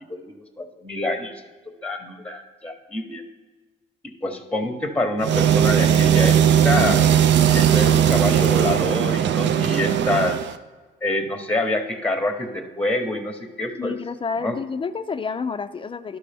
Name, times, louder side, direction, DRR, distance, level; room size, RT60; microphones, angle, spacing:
voice 1, 0.1-1.3 1.8-3.2 4.2-7.1 7.5-10.5 11.0-13.9 14.4-14.6, left 2 dB, 5° left, 5 dB, 0.9 m, -26 dB
sound 1, 5.2-10.6, right 9 dB, 65° right, 0.4 m, -18 dB
voice 2, 13.8-16.2, left 5 dB, 25° left, 11 dB, 0.4 m, -30 dB
11.0 x 6.1 x 3.3 m, 1.4 s
cardioid pair, 90°, 20 cm